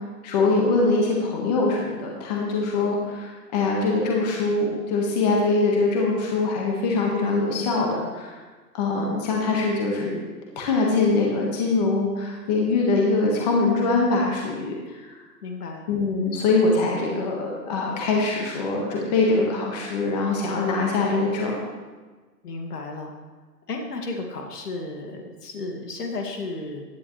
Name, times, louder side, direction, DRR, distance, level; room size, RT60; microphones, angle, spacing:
voice 1, 0.2-8.3 8.7-10.2 10.5-15.2 15.9-21.6, left 3 dB, 25° left, -2 dB, 1.6 m, -23 dB
voice 2, 15.4-15.8 22.4-23.1 23.7-26.8, left 3 dB, 65° left, 2 dB, 2.3 m, -33 dB
16.0 x 10.5 x 3.3 m, 1.4 s
hypercardioid pair, 165°, 49 cm